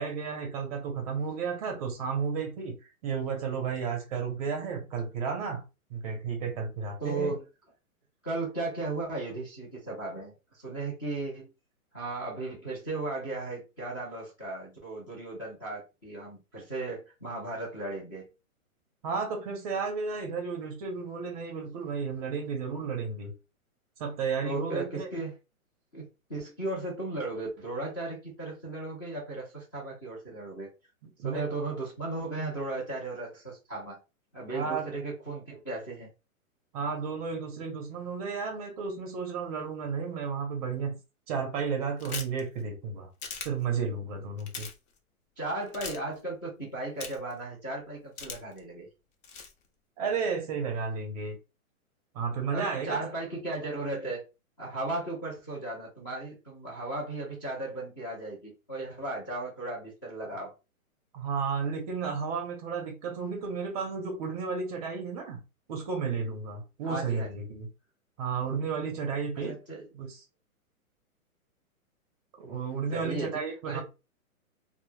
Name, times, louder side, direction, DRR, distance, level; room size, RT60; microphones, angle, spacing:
voice 1, 0.0-2.7 3.0-5.6 5.9-7.3 19.0-23.3 24.0-25.1 31.2-31.5 34.5-34.9 36.7-41.0 41.3-43.1 43.4-44.7 50.0-51.4 52.1-53.0 60.2-60.3 61.1-65.4 65.7-67.7 68.2-69.6 70.0-70.2 72.4-73.8, right 5 dB, 25° right, 0.6 m, -33 dB
voice 2, 7.0-7.4 8.2-11.5 11.9-18.3 24.4-25.4 25.9-26.0 26.3-30.7 31.2-34.0 34.3-36.1 45.4-48.9 52.5-54.2 54.6-60.5 66.8-67.3 69.4-69.8 72.9-73.8, right 2 dB, 15° left, 0.4 m, -36 dB
sound 1, 42.0-42.4 43.2-43.5 44.4-44.7 45.7-46.0 47.0-47.3 48.2-48.6 49.2-49.5, left 5 dB, 55° left, 0.8 m, -38 dB
2.1 x 2.0 x 3.1 m
hypercardioid pair, 140°, 43 cm